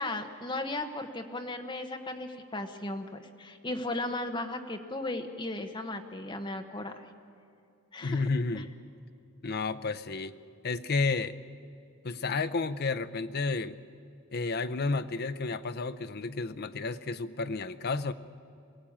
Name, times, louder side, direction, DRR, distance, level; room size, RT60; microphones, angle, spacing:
voice 1, 0.0-7.1 7.9-8.3 8.5-8.6, left 2 dB, 20° left, 6 dB, 1.1 m, -36 dB
voice 2, 8.0-8.7 9.4-10.4 10.6-11.4 12.0-13.8 14.3-18.1, left 3 dB, 45° left, 12 dB, 0.6 m, -31 dB
22.5 x 17.0 x 8.8 m, 2.4 s
head